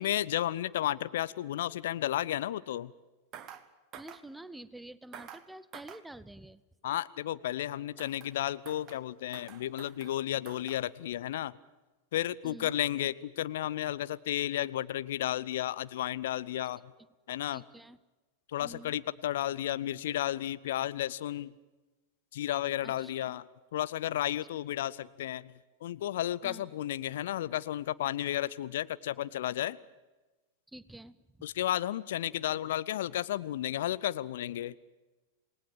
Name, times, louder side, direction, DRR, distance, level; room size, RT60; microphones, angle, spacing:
voice 1, 0.0-2.9 6.8-11.5 12.1-16.8 17.3-17.6 18.5-21.5 22.3-23.4 23.7-25.5 25.8-29.8 31.4-34.7, left 12 dB, 55° left, 17 dB, 0.7 m, -33 dB
sound 1, 3.3-3.7 3.9-4.2 5.1-5.5 5.7-6.0 8.0-8.4 8.7-9.1 9.3-10.2 10.5-10.9 11.1-11.2, right 9 dB, 30° right, 1.9 m, -49 dB
voice 2, 4.0-6.6 12.4-12.8 17.5-18.0 18.6-18.9 22.8-23.1 26.4-26.7 30.7-31.2, right 1 dB, 5° right, 17 dB, 0.9 m, -48 dB
28.0 x 20.0 x 7.4 m, 1.1 s
figure-of-eight pair, 90°, 0 cm